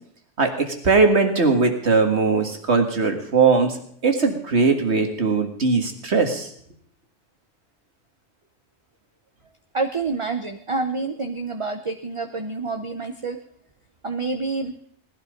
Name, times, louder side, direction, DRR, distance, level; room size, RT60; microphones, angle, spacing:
voice 1, 0.4-3.8 4.0-6.5, right 4 dB, 65° right, 5 dB, 2.2 m, -20 dB
voice 2, 9.7-13.4 14.0-14.7, right 3 dB, 30° right, 6 dB, 0.8 m, -27 dB
18.5 x 11.5 x 5.2 m, 0.64 s
omnidirectional pair, 1.2 m